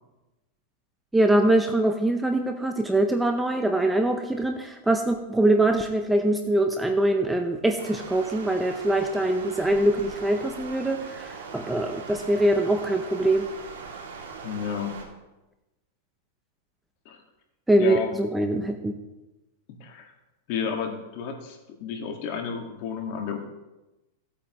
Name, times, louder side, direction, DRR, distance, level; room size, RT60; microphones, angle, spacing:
voice 1, 1.1-13.5 17.7-18.9, right 1 dB, 5° right, 5 dB, 0.6 m, -23 dB
Stream, 7.8-15.0, right 5 dB, 85° right, 2.5 m, -40 dB
voice 2, 14.4-14.9 17.1-17.2 17.8-18.1 19.8-20.1 20.5-23.4, left 6 dB, 50° left, 2 dB, 1.7 m, -31 dB
16.5 x 8.4 x 3.0 m, 1.0 s
supercardioid pair, 150°, 0 cm